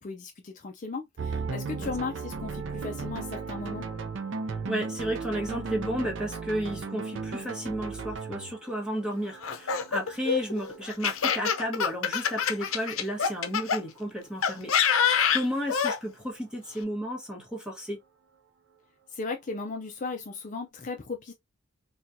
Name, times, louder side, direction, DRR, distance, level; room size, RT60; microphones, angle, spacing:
voice 1, 0.0-3.9 19.1-21.3, left 4 dB, 35° left, 0.4 m, -36 dB
sound 1, 1.2-13.8, right 4 dB, 60° right, 0.4 m, -37 dB
voice 2, 4.7-18.0, equal, 5° right, 1.1 m, -33 dB
Laughter, 9.4-13.8 14.4-16.0, left 7 dB, 80° left, 0.6 m, -26 dB
4.1 x 2.3 x 2.6 m
head